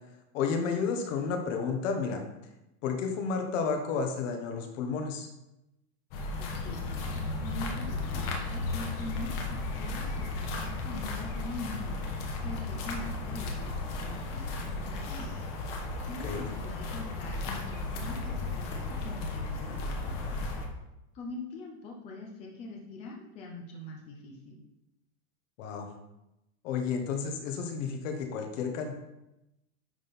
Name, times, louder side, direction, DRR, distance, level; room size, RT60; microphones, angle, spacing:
voice 1, 0.3-2.2 2.8-5.3 8.1-8.2 16.2-16.5 25.6-25.9 26.6-28.9, left 5 dB, 60° left, 4 dB, 1.3 m, -31 dB
sound 1, 6.1-20.6, left 2 dB, 40° left, 1.2 m, -35 dB
voice 2, 6.4-15.4 16.1-20.4 21.1-24.6, left 2 dB, 15° left, 0 dB, 0.5 m, -43 dB
10.0 x 4.2 x 3.6 m, 0.90 s
supercardioid pair, 170°, 44 cm